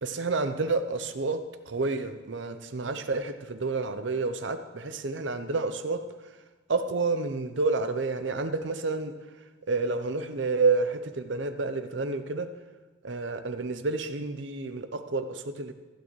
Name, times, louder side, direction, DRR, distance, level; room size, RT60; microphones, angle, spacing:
voice 1, 0.0-6.1 6.7-9.1 9.7-12.5 13.0-15.7, right 3 dB, 75° right, 9 dB, 0.7 m, -29 dB
15.5 x 9.0 x 3.2 m, 1.3 s
head